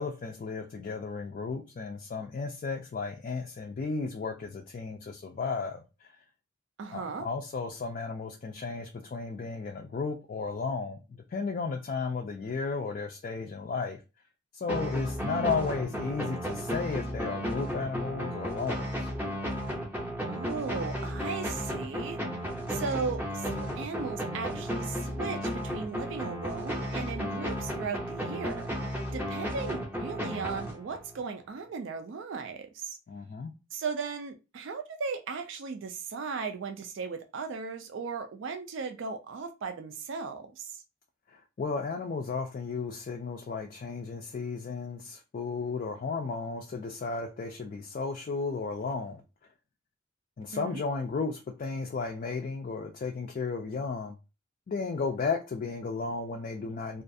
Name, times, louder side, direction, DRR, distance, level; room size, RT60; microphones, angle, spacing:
voice 1, 0.0-6.1 6.9-14.0 14.5-19.1 33.1-33.5 41.3-49.2 50.4-54.1 54.7-57.0, left 4 dB, 40° left, 0.3 m, -34 dB
voice 2, 6.8-7.3 15.2-16.0 20.3-33.0 33.7-40.8 50.5-50.8, right 5 dB, 65° right, 0.4 m, -37 dB
sound 1, 14.7-31.2, equal, 10° right, 0.5 m, -34 dB
2.4 x 2.3 x 2.5 m
head